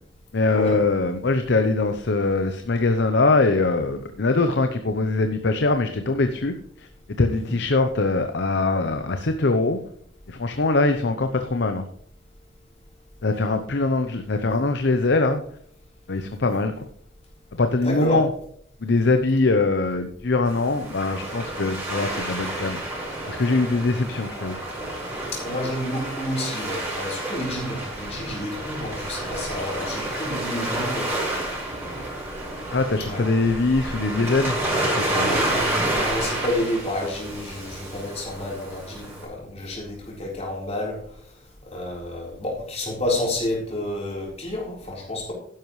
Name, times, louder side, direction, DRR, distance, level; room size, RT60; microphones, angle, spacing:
voice 1, 0.3-6.9 7.2-9.8 10.3-11.9 13.2-15.4 16.1-16.9 17.5-18.3 18.8-22.8 23.3-24.6 32.7-34.6 34.8-35.4, left 3 dB, 60° left, 7 dB, 0.8 m, -22 dB
voice 2, 17.8-18.2 25.3-31.4 33.1-33.2 35.3-41.0 41.7-45.3, left 1 dB, 35° left, -2 dB, 4.0 m, -30 dB
Waves surf, 20.4-39.2, right 1 dB, 15° right, 5.3 m, -29 dB
12.0 x 10.5 x 3.2 m, 0.63 s
head